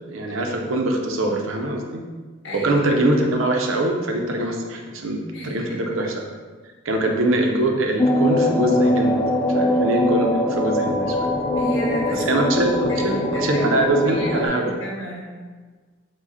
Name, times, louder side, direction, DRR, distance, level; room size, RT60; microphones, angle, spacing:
voice 1, 0.1-2.0 2.5-5.2 5.4-6.1 6.8-9.2 9.5-11.3 12.1-14.6, right 1 dB, 85° right, 2 dB, 0.6 m, -23 dB
voice 2, 2.4-2.8 5.3-6.0 11.5-12.4 12.9-15.2, equal, 65° left, -4 dB, 0.9 m, -31 dB
sound 1, 8.0-14.5, left 1 dB, 20° left, 0.3 m, -22 dB
4.9 x 2.2 x 4.0 m, 1.4 s
head